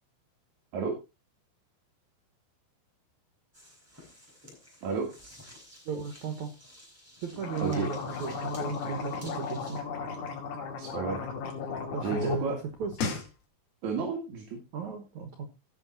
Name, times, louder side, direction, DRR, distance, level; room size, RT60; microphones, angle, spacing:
sound 1, 3.5-9.8, equal, 5° right, 3.7 m, -53 dB
voice 1, 5.9-6.5 7.2-9.8 11.9-12.9 14.7-15.5, right 5 dB, 75° right, 6 dB, 1.7 m, -35 dB
sound 2, 7.3-12.4 12.7-13.3, left 5 dB, 85° left, 4.9 m, -35 dB
voice 2, 10.8-11.2 12.0-12.6 13.8-14.6, right 5 dB, 50° right, 0 dB, 2.5 m, -32 dB
16.5 x 6.0 x 4.1 m, 0.28 s
omnidirectional pair, 5.6 m